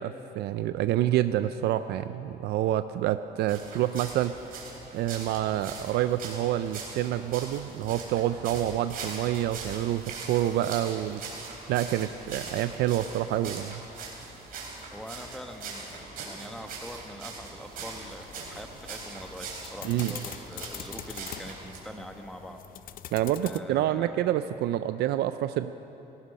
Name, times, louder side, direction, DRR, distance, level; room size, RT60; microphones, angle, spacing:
voice 1, 0.0-4.4 4.9-11.2 11.7-13.8 19.8-20.1 23.1-25.7, right 13 dB, 75° right, 12 dB, 0.5 m, -27 dB
sound 1, 3.5-21.8, right 4 dB, 60° right, 3.9 m, -41 dB
voice 2, 14.9-22.6 23.4-24.4, equal, 5° left, 5 dB, 1.2 m, -43 dB
sound 2, 18.2-23.6, left 11 dB, 55° left, 0.5 m, -44 dB
18.0 x 15.5 x 5.3 m, 3.0 s
cardioid pair, 110°, 17 cm